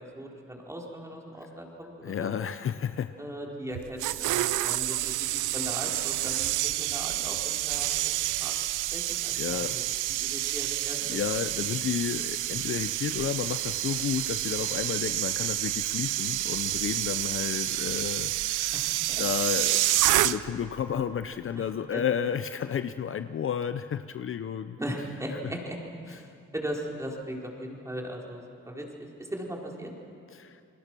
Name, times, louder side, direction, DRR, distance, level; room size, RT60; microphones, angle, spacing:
voice 1, 0.0-2.3 3.2-8.6 8.9-9.8 10.2-11.2 18.7-19.2 21.5-21.6 21.9-22.1 24.8-25.8 26.0-29.9, right 1 dB, 10° right, -1 dB, 4.2 m, -38 dB
voice 2, 2.0-3.1 4.5-4.7 9.3-9.8 11.1-18.8 19.2-25.1 25.3-25.5 26.1-26.2 30.3-30.6, left 8 dB, 45° left, 11 dB, 0.7 m, -32 dB
sound 1, 3.7-20.7 21.0-21.2, right 16 dB, 90° right, 0.7 m, -29 dB
29.5 x 21.0 x 6.2 m, 2.4 s
cardioid pair, 90°, 30 cm